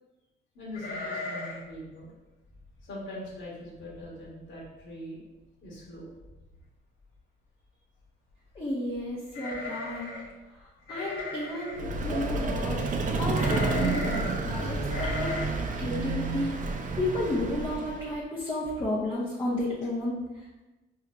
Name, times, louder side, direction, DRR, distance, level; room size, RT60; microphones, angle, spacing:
voice 1, 0.5-2.1 2.8-5.2 5.6-6.1, left 1 dB, 70° left, -5 dB, 1.4 m, -42 dB
sound 1, 0.7-1.7 2.0-2.1 2.5-2.8 3.4-3.5 3.8-4.3 4.6-4.7 5.8-5.9 6.2-6.6 9.3-10.3 10.9-11.8 13.3-14.3 14.9-15.5, left 3 dB, 85° left, 1.1 m, -36 dB
voice 2, 8.5-10.1 10.5-12.9 13.2-15.4 15.8-16.5 16.9-20.6, left 1 dB, 25° left, -7 dB, 0.8 m, -32 dB
Vehicle, 11.7-18.2, right 3 dB, 40° right, 0.5 m, -30 dB
4.5 x 2.8 x 2.2 m, 1.1 s
cardioid pair, 90°, 20 cm